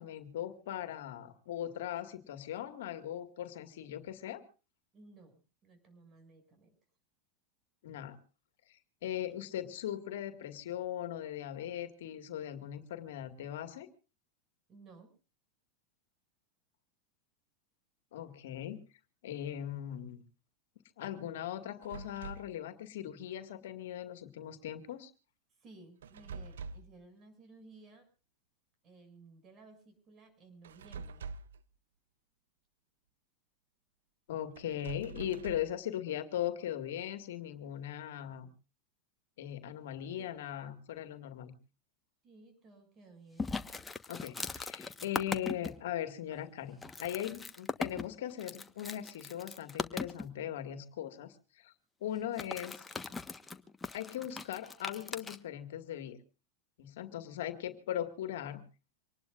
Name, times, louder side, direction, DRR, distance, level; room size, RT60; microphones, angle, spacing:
voice 1, 0.0-4.4 7.8-8.2 8.7-13.9 18.1-18.8 19.2-20.2 21.0-25.1 34.3-38.5 39.4-41.5 44.1-51.7 52.0-52.8 53.9-56.2 56.8-58.6, left 11 dB, 70° left, 9 dB, 2.0 m, -39 dB
voice 2, 4.9-6.8 14.7-15.1 25.6-28.1 28.8-31.3 40.0-40.5 42.2-43.6, right 3 dB, 35° right, 7 dB, 7.1 m, -57 dB
sound 1, 21.8-22.6 26.0-27.0 30.6-31.6 34.6-35.8, right 5 dB, 75° right, 0.8 m, -45 dB
sound 2, 43.4-45.7 46.3-46.4 46.8-50.3 52.2-55.4, left 4 dB, 15° left, 1.4 m, -39 dB
25.5 x 19.5 x 2.6 m, 0.35 s
hypercardioid pair, 95°, 0 cm